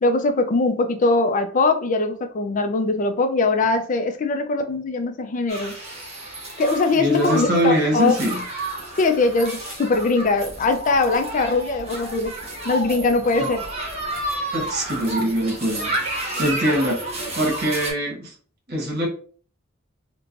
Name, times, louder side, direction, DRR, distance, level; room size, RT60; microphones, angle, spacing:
voice 1, 0.0-5.7 6.6-8.1 9.0-12.4 12.6-13.6, left 3 dB, 40° left, 0.4 m, -21 dB
sound 1, 5.5-17.9, right 1 dB, 30° right, 0.7 m, -31 dB
voice 2, 6.9-8.4 13.4-13.5 14.5-18.3 18.7-19.1, equal, 50° right, 1.1 m, -23 dB
3.1 x 2.2 x 2.5 m
head